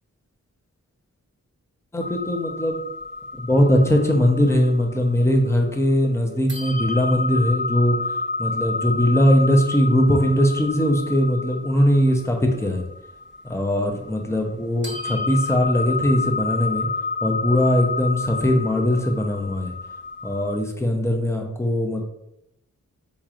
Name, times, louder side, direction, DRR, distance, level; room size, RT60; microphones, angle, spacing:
voice 1, 1.9-2.8 3.4-8.0 8.4-12.8 13.4-16.9 17.2-19.7 20.2-22.0, equal, 10° left, 2 dB, 0.6 m, -20 dB
sound 1, 2.0-6.1 6.5-14.6 14.8-20.6, left 3 dB, 35° right, 0.8 m, -30 dB
3.8 x 3.0 x 2.5 m, 0.83 s
cardioid pair, 50°, 32 cm